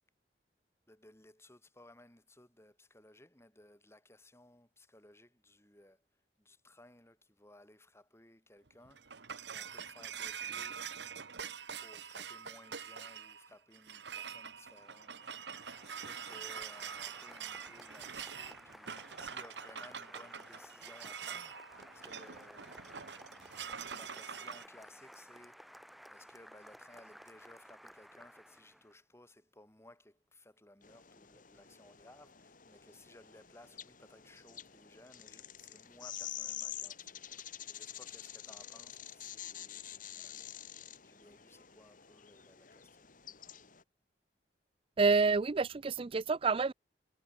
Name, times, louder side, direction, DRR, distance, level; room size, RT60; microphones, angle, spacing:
voice 1, 0.9-6.1 6.4-10.8 11.5-23.0 23.8-25.7 26.1-40.6 41.0-43.1, left 1 dB, 15° left, 8.0 m, -59 dB
sound 1, 8.7-24.6, right 7 dB, 80° right, 1.6 m, -45 dB
Applause, 14.5-29.0, equal, ahead, 3.0 m, -55 dB
sound 2, 30.8-43.8, left 11 dB, 50° left, 2.3 m, -48 dB
voice 2, 45.0-46.7, right 4 dB, 30° right, 0.4 m, -28 dB
head